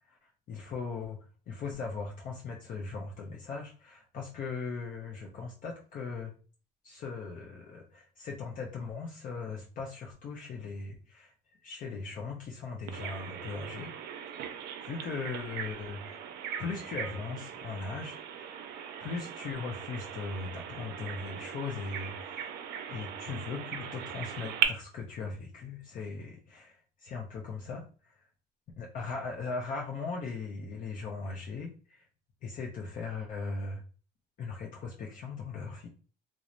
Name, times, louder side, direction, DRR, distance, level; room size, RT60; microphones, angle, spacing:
voice 1, 0.0-6.3 6.8-11.3 11.6-13.9 14.8-16.2 16.6-18.6 19.0-22.5 22.9-28.2 28.8-32.1 32.4-33.8 34.4-35.9, left 4 dB, 55° left, -1 dB, 0.6 m, -39 dB
Bird vocalization bird call bird song, 12.9-24.7, right 9 dB, 75° right, 0.4 m, -38 dB
3.0 x 2.0 x 2.4 m, 0.38 s
cardioid pair, 110°, 17 cm